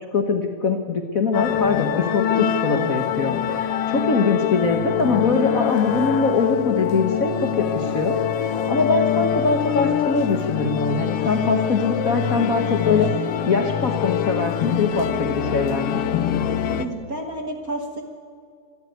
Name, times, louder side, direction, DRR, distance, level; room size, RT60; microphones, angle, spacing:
voice 1, 0.1-7.3 7.6-13.1 13.5-16.0, left 4 dB, 85° left, 5 dB, 0.7 m, -22 dB
sound 1, 1.3-16.9, left 9 dB, 70° left, 1.4 m, -24 dB
voice 2, 16.8-18.0, right 1 dB, 50° right, 3 dB, 1.0 m, -30 dB
27.0 x 11.5 x 9.4 m, 2.3 s
omnidirectional pair, 3.6 m